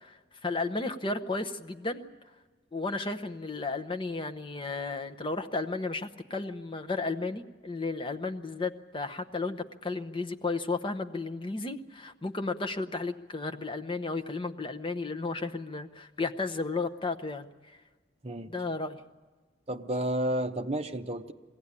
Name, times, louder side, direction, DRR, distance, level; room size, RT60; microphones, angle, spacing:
voice 1, 0.0-2.1 2.7-17.5 18.5-19.0, left 3 dB, 25° left, 8 dB, 0.8 m, -33 dB
voice 2, 19.7-21.3, right 1 dB, 30° right, 6 dB, 0.8 m, -31 dB
22.5 x 16.5 x 9.7 m, 1.3 s
head